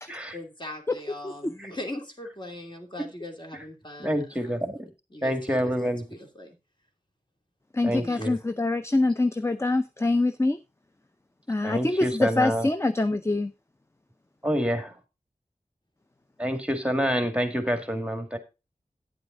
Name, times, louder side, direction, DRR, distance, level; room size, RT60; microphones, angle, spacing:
voice 1, 0.3-4.8 5.1-6.5 7.8-8.3, left 1 dB, 35° left, 3 dB, 2.7 m, -40 dB
voice 2, 4.0-4.9 5.2-6.0 7.8-8.4 11.6-12.7 14.4-14.9 16.4-18.4, equal, 10° right, 7 dB, 1.9 m, -27 dB
voice 3, 7.7-10.6 11.5-13.5, left 2 dB, 20° left, 11 dB, 0.6 m, -25 dB
9.7 x 8.2 x 3.8 m, 0.27 s
cardioid pair, 45°, 14 cm